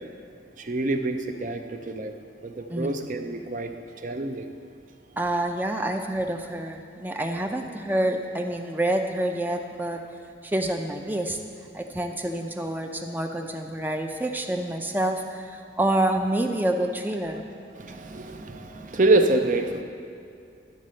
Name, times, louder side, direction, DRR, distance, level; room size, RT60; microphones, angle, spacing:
voice 1, 0.6-2.2 2.4-3.7 4.0-4.5 17.7-19.8, right 2 dB, 45° right, 6 dB, 0.7 m, -26 dB
voice 2, 2.7-3.0 5.2-10.0 10.4-11.4 11.7-17.4, right 1 dB, 10° right, 4 dB, 0.5 m, -27 dB
12.0 x 4.2 x 7.6 m, 2.5 s
head